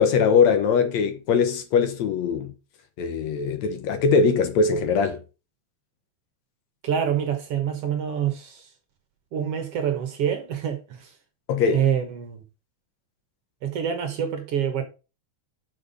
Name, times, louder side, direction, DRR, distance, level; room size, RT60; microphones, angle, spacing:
voice 1, 0.0-2.5 3.0-5.2 11.5-11.8, left 5 dB, 70° left, 2.2 m, -21 dB
voice 2, 6.8-8.7 9.3-11.1 11.7-12.4 13.6-14.8, right 8 dB, 60° right, 1.9 m, -26 dB
6.3 x 5.9 x 5.3 m
omnidirectional pair, 3.4 m